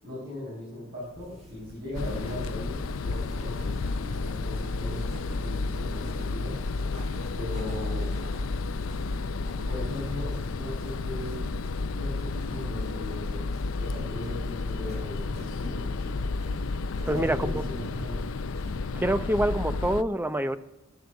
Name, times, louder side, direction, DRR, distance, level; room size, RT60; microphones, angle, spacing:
voice 1, 0.0-3.7 4.2-6.6 7.3-8.1 9.7-11.5 11.9-16.0 17.0-18.2, left 1 dB, 50° right, -6 dB, 5.6 m, -38 dB
sound 1, 1.0-18.7, equal, 35° right, 7.1 m, -46 dB
sound 2, 1.9-20.0, left 3 dB, 75° left, 0.5 m, -31 dB
voice 2, 17.1-17.6 18.9-20.6, right 1 dB, 10° right, 11 dB, 0.7 m, -26 dB
13.0 x 11.0 x 6.4 m, 0.92 s
head